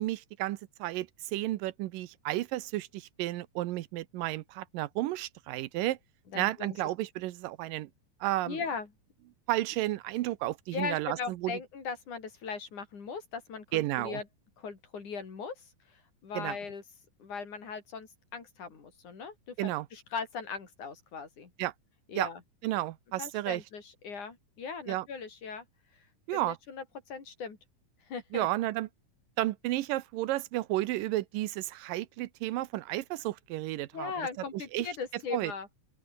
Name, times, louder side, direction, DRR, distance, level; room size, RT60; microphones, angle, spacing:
voice 1, 0.0-6.0 6.3-7.9 8.2-8.6 9.5-11.6 13.7-14.2 16.3-16.6 19.6-19.9 21.6-21.7 22.2-22.3 22.6-23.6 24.9-25.1 26.3-26.6 28.3-28.9 29.4-34.3 34.7-34.9 35.3-35.5, right 16 dB, 85° right, 2.5 m, -32 dB
voice 2, 6.3-6.8 8.5-8.9 10.7-14.3 14.6-16.8 17.2-21.5 22.1-22.4 23.2-25.7 26.3-27.6 28.1-28.5 33.9-35.7, left 5 dB, 60° left, 5.6 m, -39 dB
open air
omnidirectional pair, 3.9 m